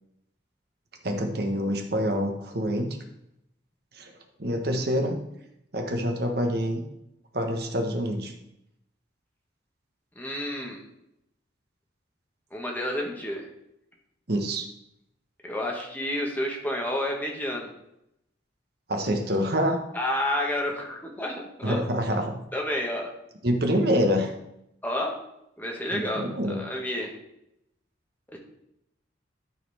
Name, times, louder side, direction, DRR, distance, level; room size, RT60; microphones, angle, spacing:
voice 1, 1.0-3.0 4.0-4.1 4.4-5.2 5.7-6.8 7.3-8.3 14.3-14.7 18.9-19.8 21.6-22.4 23.4-24.3 25.9-26.6, equal, 55° right, 3 dB, 1.2 m, -26 dB
voice 2, 10.1-10.8 12.5-13.5 15.4-17.7 19.9-21.8 22.5-23.1 24.8-25.1 25.6-27.1 28.3-28.4, left 1 dB, 10° left, -1 dB, 1.5 m, -30 dB
12.0 x 4.3 x 4.2 m, 0.82 s
head